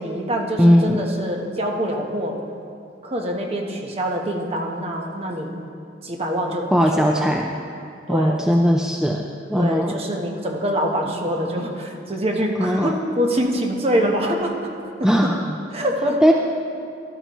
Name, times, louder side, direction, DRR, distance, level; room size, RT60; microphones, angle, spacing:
voice 1, 0.0-2.4 3.0-5.5 6.0-7.3 7.7-7.8 8.1-8.4 9.5-14.7 15.0-15.3 15.7-16.2, equal, 35° right, 1 dB, 1.1 m, -25 dB
voice 2, 0.6-1.0 6.7-7.5 8.1-9.2 9.5-9.9 12.6-12.9 15.0-15.4 16.2-16.3, equal, 5° right, 1 dB, 0.4 m, -18 dB
14.5 x 12.0 x 3.1 m, 2.4 s
head